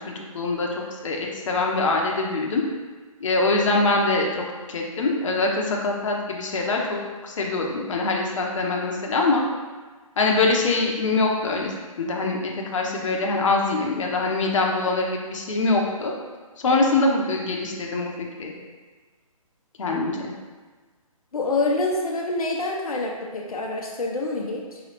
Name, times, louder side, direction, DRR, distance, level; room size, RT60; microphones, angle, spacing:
voice 1, 0.1-2.6 3.2-9.4 10.2-11.7 12.0-16.1 16.6-18.5 19.8-20.3, left 3 dB, 60° left, 0 dB, 0.8 m, -24 dB
voice 2, 21.3-24.8, left 2 dB, 90° left, 0 dB, 0.7 m, -26 dB
4.6 x 3.1 x 2.9 m, 1.4 s
hypercardioid pair, 160°, 18 cm